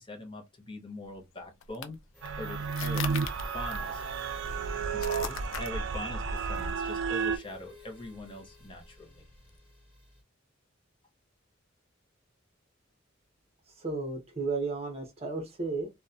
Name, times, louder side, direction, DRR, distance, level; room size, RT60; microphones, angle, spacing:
voice 1, 0.0-2.0 2.4-3.0 3.5-4.0 4.9-9.2, left 2 dB, 25° left, 0.6 m, -42 dB
sound 1, 1.0-9.6, left 9 dB, 85° left, 0.4 m, -44 dB
sound 2, 2.1-10.2, equal, 5° left, 1.4 m, -54 dB
sound 3, 2.2-7.4, right 5 dB, 70° right, 0.4 m, -32 dB
voice 2, 13.8-15.9, right 3 dB, 30° right, 0.7 m, -33 dB
2.7 x 2.1 x 2.3 m
head